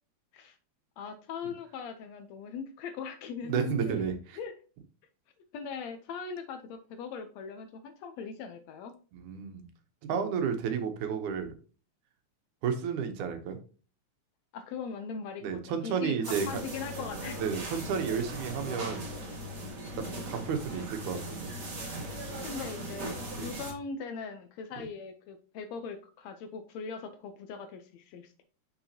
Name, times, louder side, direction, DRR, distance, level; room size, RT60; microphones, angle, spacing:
voice 1, 1.0-4.5 5.5-8.9 14.5-16.2 16.5-17.5 19.9-20.3 22.4-28.4, left 5 dB, 75° left, 8 dB, 1.8 m, -40 dB
voice 2, 3.4-4.4 9.1-9.7 10.0-11.5 12.6-13.6 15.4-16.6 17.4-19.1 20.0-21.5 23.4-23.5 24.8-24.9, right 6 dB, 80° right, 7 dB, 2.4 m, -32 dB
sound 1, 16.2-23.7, right 1 dB, 35° right, 2.2 m, -39 dB
6.8 x 5.8 x 2.8 m, 0.37 s
omnidirectional pair, 3.4 m